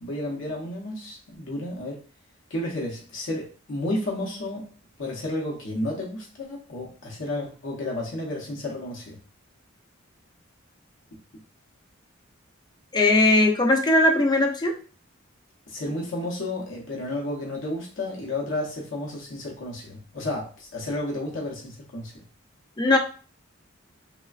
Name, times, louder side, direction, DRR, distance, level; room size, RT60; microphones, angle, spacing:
voice 1, 0.0-2.0 2.5-4.7 5.0-9.2 15.7-22.1, left 1 dB, 65° left, -2 dB, 0.7 m, -32 dB
voice 2, 12.9-14.8 22.8-23.0, left 2 dB, 20° left, 3 dB, 0.4 m, -19 dB
3.2 x 2.1 x 2.3 m, 0.39 s
head